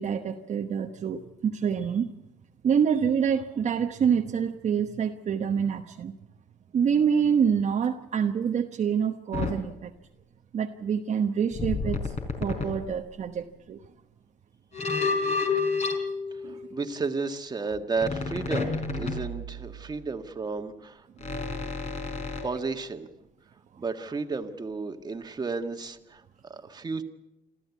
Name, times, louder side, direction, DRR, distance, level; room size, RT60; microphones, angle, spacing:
voice 1, 0.0-2.1 2.6-6.1 6.7-9.9 10.5-12.1 12.4-13.8 16.4-16.6, right 7 dB, 45° right, 3 dB, 1.1 m, -26 dB
sound 1, 9.3-9.6 11.5-12.9 14.7-16.9 18.0-20.0 21.2-22.5, left 4 dB, 40° left, 4.2 m, -30 dB
voice 2, 16.4-21.1 22.4-23.1 23.8-27.0, right 4 dB, 25° right, 6 dB, 1.7 m, -33 dB
27.0 x 14.0 x 8.3 m, 0.93 s
cardioid pair, 110°, 17 cm